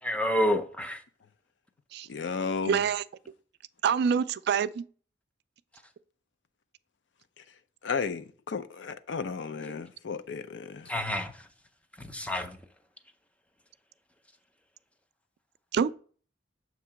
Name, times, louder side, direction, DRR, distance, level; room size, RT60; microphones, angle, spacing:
voice 1, 0.0-1.0 10.9-11.5 12.0-12.6, equal, 5° left, 0.6 m, -29 dB
voice 2, 2.1-2.8 7.8-10.9, left 5 dB, 75° left, 0.5 m, -34 dB
voice 3, 2.7-3.0 3.8-4.8 15.7-15.9, right 7 dB, 60° right, 0.3 m, -26 dB
7.2 x 2.9 x 5.7 m
head